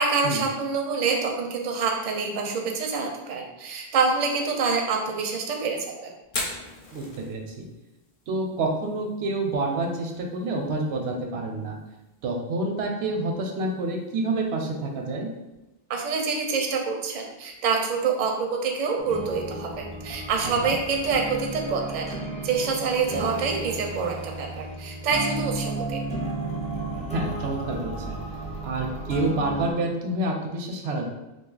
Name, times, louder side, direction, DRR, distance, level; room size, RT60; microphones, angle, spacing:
voice 1, 0.0-6.1 15.9-22.2 22.4-26.0, right 5 dB, 55° right, 1 dB, 0.6 m, -26 dB
Fire, 6.2-20.1, left 2 dB, 60° left, 0.8 m, -44 dB
voice 2, 6.9-7.7 8.3-11.8 12.2-15.3 20.4-20.7 27.1-28.2 28.6-31.0, right 2 dB, 85° right, 2 dB, 0.9 m, -28 dB
sound 1, 19.0-29.7, right 2 dB, 10° left, 0.3 m, -34 dB
2.6 x 2.3 x 3.8 m, 0.99 s
omnidirectional pair, 1.0 m